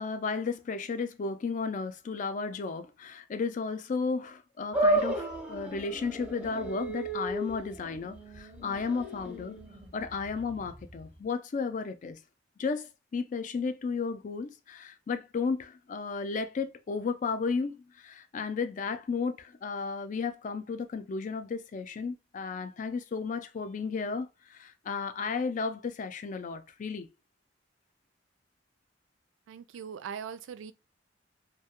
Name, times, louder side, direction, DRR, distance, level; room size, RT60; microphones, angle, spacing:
voice 1, 0.0-9.6 9.9-12.2 12.6-27.1, left 4 dB, 40° left, 0.3 m, -34 dB
sound 1, 4.7-11.2, right 1 dB, 10° right, 0.6 m, -33 dB
voice 2, 29.5-30.7, right 7 dB, 85° right, 0.3 m, -40 dB
2.3 x 2.2 x 2.8 m
head